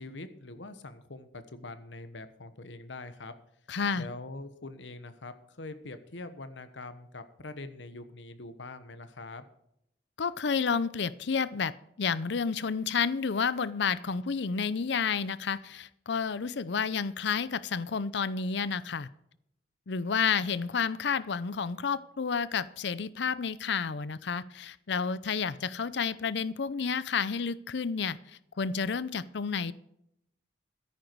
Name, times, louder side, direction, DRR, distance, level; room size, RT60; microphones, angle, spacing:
voice 1, 0.0-3.3 3.9-9.5, left 2 dB, 90° left, 11 dB, 1.2 m, -43 dB
voice 2, 3.7-4.1 10.2-11.7 12.0-19.1 19.9-28.2 28.6-29.7, left 5 dB, 70° left, 17 dB, 0.6 m, -30 dB
13.5 x 10.5 x 4.7 m, 0.77 s
head